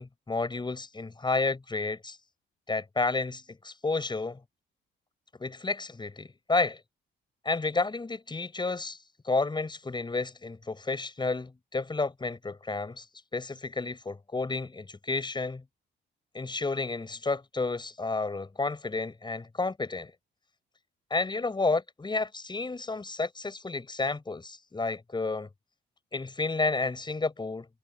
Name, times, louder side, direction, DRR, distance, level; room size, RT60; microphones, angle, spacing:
voice 1, 0.0-2.2 2.7-4.4 5.4-6.8 7.4-9.0 9.2-13.0 13.3-15.6 16.3-20.1 21.1-25.5 26.1-27.7, left 3 dB, 25° left, 6.2 m, -31 dB
cardioid pair, 90°, 20 cm